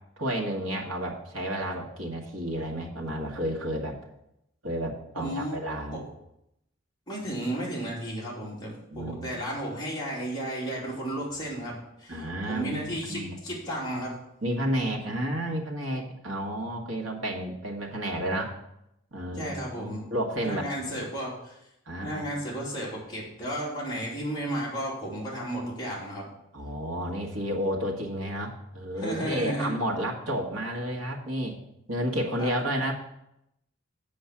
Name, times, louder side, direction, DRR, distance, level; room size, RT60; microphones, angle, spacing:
voice 1, 0.2-4.0 4.6-6.0 8.9-9.3 12.1-13.3 14.4-18.6 19.1-21.0 21.9-22.2 26.5-31.6 31.9-32.9, equal, 75° right, 0 dB, 1.6 m, -31 dB
voice 2, 5.1-5.6 5.9-6.0 7.1-14.2 19.3-20.0 20.4-21.6 22.0-26.3 29.0-29.7 32.4-32.5, right 1 dB, 20° left, -6 dB, 3.0 m, -33 dB
8.0 x 5.2 x 7.2 m, 0.82 s
head